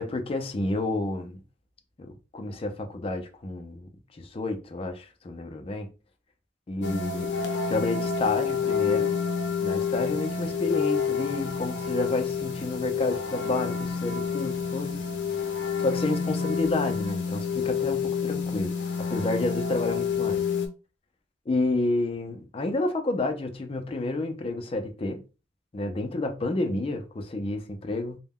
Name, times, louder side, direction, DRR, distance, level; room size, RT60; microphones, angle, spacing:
voice 1, 0.0-1.4 2.0-5.9 6.7-7.4 7.7-9.1 9.6-15.0 15.8-18.7 19.0-20.4 21.5-25.2 25.7-28.2, left 2 dB, 35° left, 0.4 m, -30 dB
sound 1, 6.8-20.7, left 6 dB, 85° left, 0.5 m, -28 dB
2.2 x 2.1 x 3.5 m
head